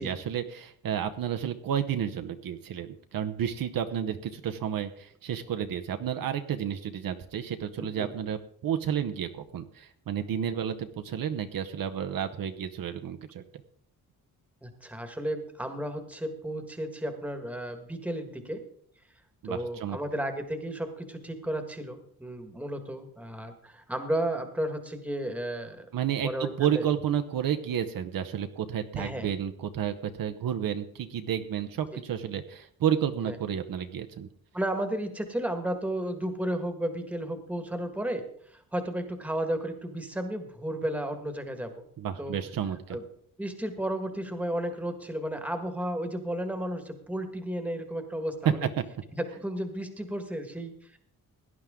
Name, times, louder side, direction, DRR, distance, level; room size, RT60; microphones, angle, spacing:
voice 1, 0.0-13.4 19.4-20.0 25.9-34.3 42.0-43.0 48.4-48.5, right 9 dB, 65° right, 8 dB, 0.9 m, -31 dB
voice 2, 14.6-18.6 19.4-25.9 26.2-26.8 29.0-29.3 31.9-32.0 33.2-33.3 34.5-38.2 38.5-41.9 42.2-42.4 42.9-43.0 43.4-48.7 49.1-51.0, right 1 dB, 5° right, 7 dB, 1.5 m, -33 dB
17.5 x 10.5 x 3.7 m, 0.62 s
wide cardioid pair, 170°, 37 cm